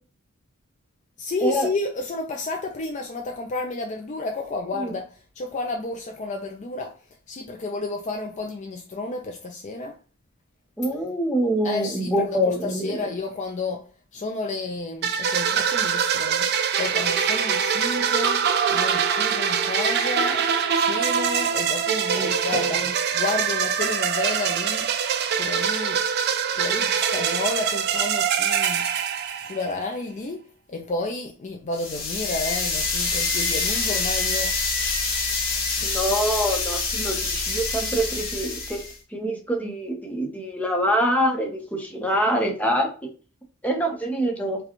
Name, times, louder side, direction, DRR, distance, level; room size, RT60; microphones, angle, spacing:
voice 1, 1.2-6.9 7.3-10.0 11.6-16.5 16.8-20.5 20.7-24.9 25.4-26.0 26.5-28.9 29.4-34.5 35.8-35.9, left 3 dB, 35° left, 0.4 m, -31 dB
voice 2, 10.8-13.0 22.1-22.8 35.8-38.8 39.1-43.1 43.6-44.6, equal, 5° left, 0.8 m, -25 dB
sound 1, 15.0-29.8, right 7 dB, 50° right, 0.4 m, -24 dB
sound 2, 31.7-38.9, left 4 dB, 65° left, 1.3 m, -26 dB
4.8 x 2.3 x 2.9 m
head